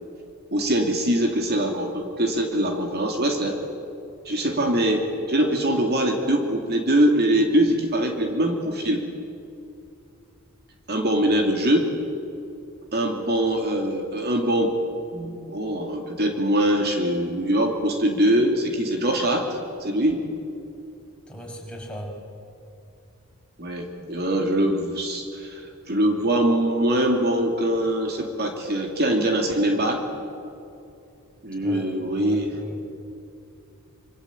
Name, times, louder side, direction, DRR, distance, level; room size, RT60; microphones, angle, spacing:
voice 1, 0.5-3.6 4.2-9.0 10.9-11.9 12.9-14.7 15.1-20.2 23.6-30.0 31.4-32.5, right 1 dB, 50° right, 3 dB, 2.8 m, -23 dB
voice 2, 21.3-22.2 31.6-32.8, equal, 5° left, -1 dB, 5.8 m, -37 dB
26.5 x 25.5 x 8.7 m, 2.7 s
head